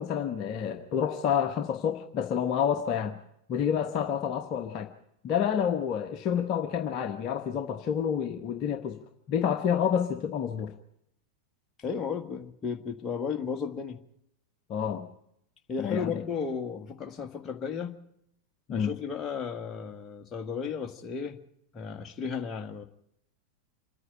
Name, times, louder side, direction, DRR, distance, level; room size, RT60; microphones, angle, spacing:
voice 1, 0.0-3.2 3.5-4.9 5.2-9.0 9.3-10.7 14.7-15.0 15.8-16.1 18.7-18.9, left 8 dB, 35° left, 5 dB, 1.2 m, -28 dB
voice 2, 11.8-14.0 15.7-18.0 18.7-21.4 21.7-22.8, left 6 dB, 20° left, 4 dB, 1.6 m, -34 dB
26.5 x 9.7 x 10.0 m, 0.77 s
figure-of-eight pair, 90°, 0 cm